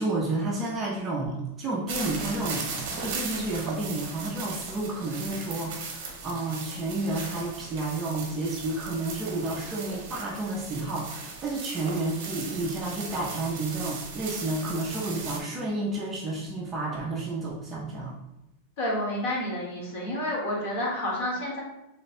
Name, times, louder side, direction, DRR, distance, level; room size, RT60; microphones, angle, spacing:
voice 1, 0.0-18.2, right 2 dB, 15° right, -4 dB, 0.4 m, -31 dB
sound 1, 1.9-15.4, right 4 dB, 45° right, 0.7 m, -37 dB
voice 2, 18.8-21.6, left 1 dB, 45° left, -4 dB, 1.2 m, -29 dB
3.2 x 2.1 x 4.1 m, 0.89 s
supercardioid pair, 175°, 0 cm